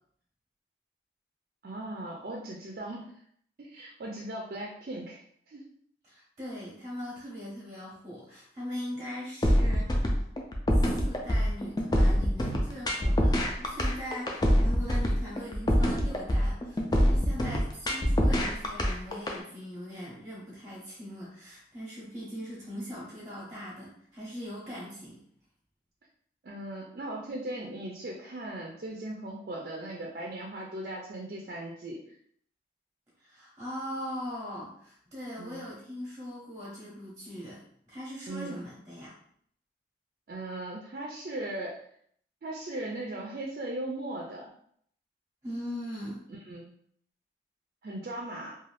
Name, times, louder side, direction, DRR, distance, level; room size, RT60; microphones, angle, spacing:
voice 1, 1.6-3.1 3.6-5.6 26.4-32.0 35.4-35.6 38.3-38.6 40.3-41.8 42.4-44.5 46.3-46.7 47.8-48.6, right 1 dB, 55° right, -1 dB, 0.4 m, -38 dB
voice 2, 6.0-10.2 10.7-25.2 33.2-39.1 45.4-46.2, equal, 20° right, -6 dB, 0.7 m, -40 dB
sound 1, 9.4-19.4, equal, 25° left, 0.3 m, -25 dB
2.5 x 2.3 x 3.2 m, 0.65 s
head